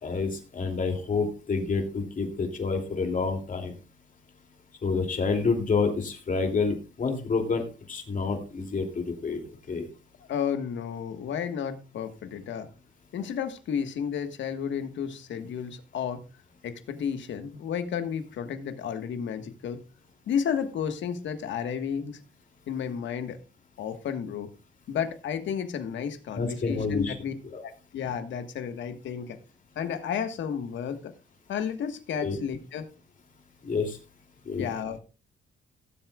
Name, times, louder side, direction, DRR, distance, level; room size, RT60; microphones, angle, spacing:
voice 1, 0.0-3.7 4.8-7.6 7.9-9.4 9.7-9.9 26.4-27.1 27.4-27.6 32.2-32.4 33.6-34.0 34.5-34.7, left 4 dB, 40° left, 4 dB, 2.8 m, -28 dB
voice 2, 10.3-12.7 13.1-16.2 16.6-19.8 20.3-22.2 22.7-23.4 23.8-24.5 24.9-27.3 27.6-29.4 29.7-31.1 31.5-32.9 34.6-35.0, left 7 dB, 70° left, 8 dB, 1.5 m, -32 dB
18.0 x 7.8 x 2.4 m, 0.32 s
cardioid pair, 90°, 20 cm